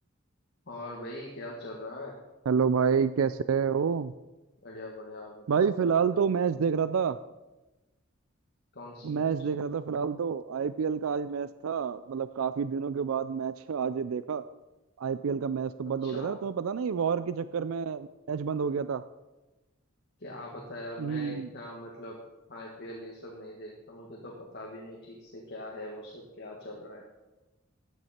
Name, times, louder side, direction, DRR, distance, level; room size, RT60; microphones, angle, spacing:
voice 1, 0.7-2.2 4.6-6.2 8.7-9.3 16.0-16.4 20.2-22.2 22.5-27.0, left 1 dB, 55° left, -2 dB, 1.8 m, -42 dB
voice 2, 2.5-4.1 5.5-7.2 9.0-14.4 15.0-19.0 21.0-21.5, right 6 dB, 80° right, 14 dB, 0.4 m, -28 dB
14.5 x 9.3 x 4.4 m, 1.1 s
head